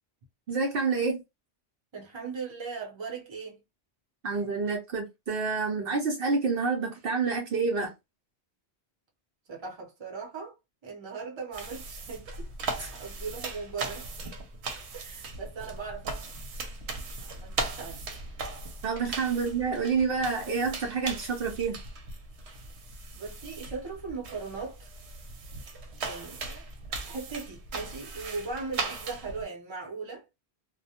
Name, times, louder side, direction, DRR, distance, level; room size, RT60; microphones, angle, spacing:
voice 1, 0.5-1.2 4.2-7.9 12.8-12.9 18.8-21.8, right 4 dB, 65° right, 0.7 m, -28 dB
voice 2, 1.9-3.6 9.5-10.6 10.8-12.5 12.9-14.1 14.9-16.3 16.9-18.2 23.1-24.9 26.0-26.7 27.0-30.2, right 4 dB, 30° right, 0.7 m, -39 dB
sound 1, 11.5-29.4, right 3 dB, 85° right, 0.9 m, -38 dB
2.2 x 2.1 x 2.7 m
omnidirectional pair, 1.1 m